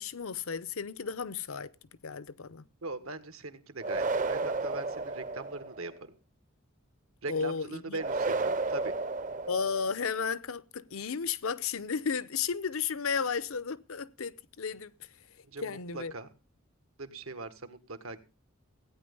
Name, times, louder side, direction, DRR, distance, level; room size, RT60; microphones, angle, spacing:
voice 1, 0.0-1.7 2.0-2.6 7.3-8.0 9.5-14.9 15.6-16.1, left 6 dB, 80° left, 0.7 m, -33 dB
voice 2, 2.8-6.1 7.2-8.9 15.4-16.3 17.0-18.2, right 2 dB, 85° right, 1.7 m, -40 dB
sound 1, 3.8-5.9 8.0-10.1, right 3 dB, 40° right, 0.7 m, -32 dB
16.5 x 9.6 x 5.4 m
head